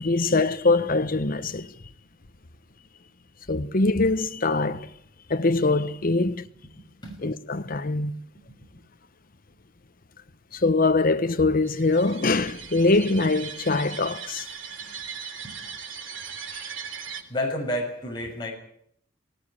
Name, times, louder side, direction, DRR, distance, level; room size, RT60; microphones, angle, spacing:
voice 1, 0.0-1.7 3.5-4.9 5.3-6.5 7.2-8.1 10.5-14.5 16.5-16.6, left 3 dB, 45° left, 1.0 m, -23 dB
voice 2, 6.8-7.2 8.3-8.6 14.8-14.9 15.4-15.5 17.3-18.5, left 1 dB, 25° left, 6.5 m, -31 dB
sound 1, 11.6-17.2, right 7 dB, 90° right, 3.1 m, -39 dB
19.5 x 18.0 x 9.9 m
head